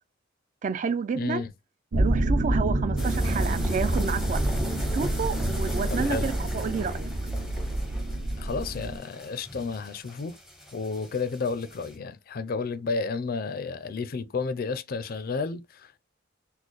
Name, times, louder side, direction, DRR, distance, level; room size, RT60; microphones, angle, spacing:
voice 1, 0.6-1.4 1.9-4.4 4.9-7.1, right 5 dB, 40° right, 0.3 m, -30 dB
voice 2, 1.1-1.5 5.9-6.3 8.4-10.4 10.7-16.0, left 4 dB, 45° left, 0.4 m, -32 dB
sound 1, 1.9-9.0, right 1 dB, 75° right, 0.7 m, -27 dB
sound 2, 3.0-12.0, left 1 dB, 5° right, 0.7 m, -38 dB
4.2 x 2.0 x 3.0 m
head